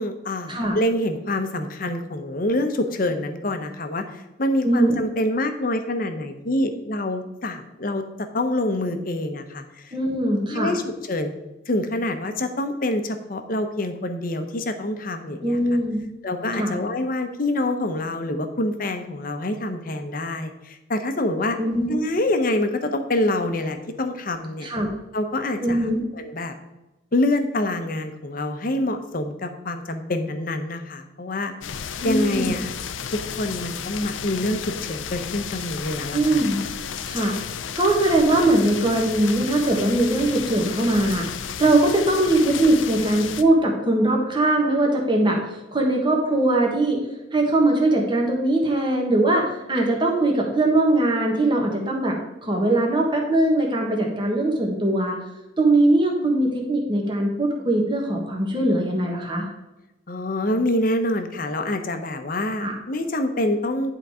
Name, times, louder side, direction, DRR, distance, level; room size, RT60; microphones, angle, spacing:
voice 1, 0.0-8.0 8.3-9.9 10.5-11.3 11.7-15.6 16.2-21.6 21.9-24.7 25.1-25.9 26.1-26.5 27.1-31.5 32.0-32.7 33.1-36.4 60.1-63.9, left 1 dB, 45° left, 7 dB, 0.8 m, -26 dB
voice 2, 9.9-10.7 15.4-16.0 16.5-16.7 21.6-21.9 24.6-24.9 25.6-26.0 32.0-32.5 36.1-36.6 37.1-37.4 37.8-41.3 41.6-45.4 45.7-47.0 47.3-52.2 52.4-55.2 55.6-59.4 62.6-62.7, right 1 dB, 25° right, 0 dB, 1.4 m, -21 dB
sound 1, 31.6-43.4, left 7 dB, 90° left, 0.5 m, -33 dB
10.5 x 4.0 x 4.9 m, 1.0 s
head